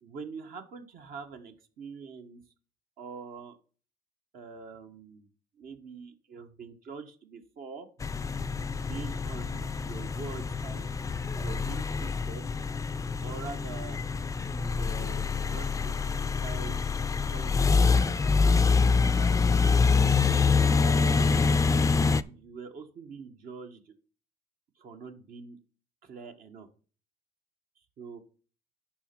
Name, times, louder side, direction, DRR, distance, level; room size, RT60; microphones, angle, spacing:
voice 1, 0.0-2.4 3.0-3.6 4.3-5.3 5.5-7.9 8.8-10.9 11.1-12.5 13.2-14.0 14.5-16.9 17.3-19.6 20.7-21.4 22.3-23.9 24.7-25.6 26.0-26.7 27.8-28.2, right 5 dB, 55° right, 5 dB, 1.4 m, -44 dB
sound 1, 8.0-22.2, left 4 dB, 20° left, 0.5 m, -26 dB
11.0 x 4.4 x 6.0 m, 0.39 s
cardioid pair, 110°, 17 cm